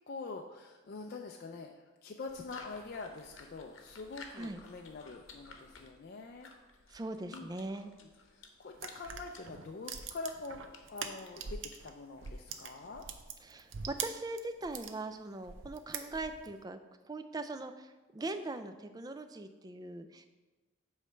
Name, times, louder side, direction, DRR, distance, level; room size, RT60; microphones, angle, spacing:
voice 1, 0.1-6.5 7.3-7.5 8.0-13.0, left 3 dB, 50° left, 2 dB, 0.4 m, -45 dB
sound 1, 2.3-13.1, left 4 dB, 75° left, 0.9 m, -56 dB
voice 2, 6.9-7.9 13.4-16.8 17.0-20.3, right 2 dB, 20° right, 9 dB, 0.3 m, -41 dB
sound 2, 8.7-11.9 12.2-15.0 15.4-16.5, right 6 dB, 70° right, 0.6 m, -43 dB
8.1 x 3.2 x 5.6 m, 1.2 s
head